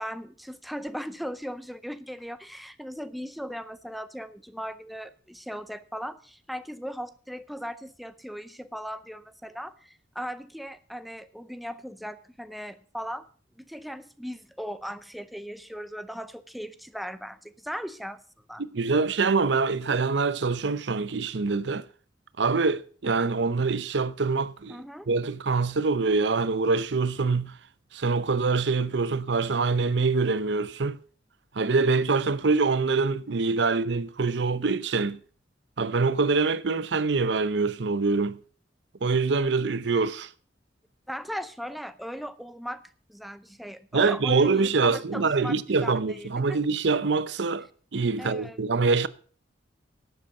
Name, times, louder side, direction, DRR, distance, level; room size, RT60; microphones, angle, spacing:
voice 1, 0.0-13.3 13.6-18.2 18.5-18.6 24.7-25.1 41.1-42.8 43.1-46.6 48.2-48.6, equal, ahead, 0.6 m, -38 dB
voice 2, 18.7-21.8 22.4-27.5 27.9-31.0 31.5-35.2 35.8-38.4 39.0-40.3 43.9-47.7 47.9-49.1, right 4 dB, 65° right, 0.7 m, -25 dB
12.0 x 8.1 x 7.1 m
head